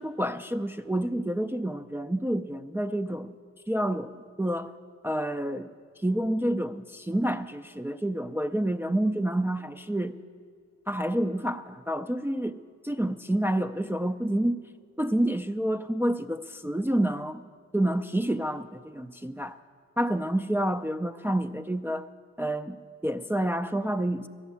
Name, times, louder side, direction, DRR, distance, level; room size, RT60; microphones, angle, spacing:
voice 1, 0.0-3.3 3.7-4.1 4.4-4.7 5.0-5.7 6.0-10.2 10.9-14.6 15.0-17.4 17.7-19.5 20.0-22.1 22.4-24.3, right 1 dB, 10° right, 6 dB, 0.3 m, -28 dB
13.0 x 7.1 x 9.5 m, 2.1 s
wide cardioid pair, 105°, 29 cm